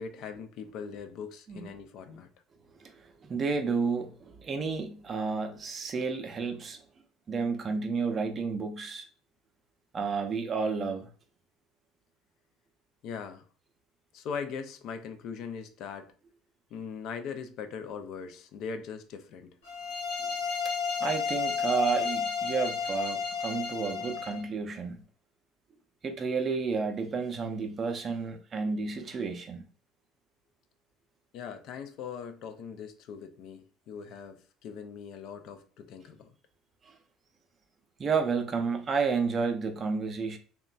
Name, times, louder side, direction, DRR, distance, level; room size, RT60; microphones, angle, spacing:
voice 1, 0.0-2.3 13.0-13.5 14.1-16.1 16.7-19.6 31.3-36.3, left 6 dB, 60° left, 0.4 m, -40 dB
voice 2, 2.8-6.8 7.3-9.1 9.9-11.1 21.0-25.0 26.0-29.6 36.8-36.9 38.0-40.4, right 5 dB, 40° right, 0.5 m, -31 dB
sound 1, 19.6-24.4, left 6 dB, 75° left, 0.7 m, -32 dB
2.9 x 2.2 x 2.3 m
hypercardioid pair, 65°, 0 cm